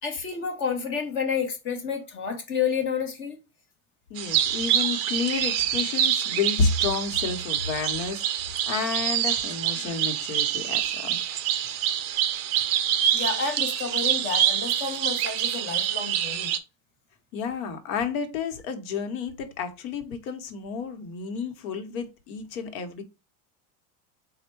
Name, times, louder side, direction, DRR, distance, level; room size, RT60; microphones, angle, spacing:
voice 1, 0.0-3.4 13.1-16.5, left 6 dB, 30° left, 0.9 m, -30 dB
voice 2, 4.1-11.2 17.3-23.0, left 5 dB, 75° left, 1.0 m, -30 dB
sound 1, 4.2-16.6, right 10 dB, 35° right, 0.4 m, -26 dB
4.3 x 2.2 x 4.4 m
supercardioid pair, 155°, 42 cm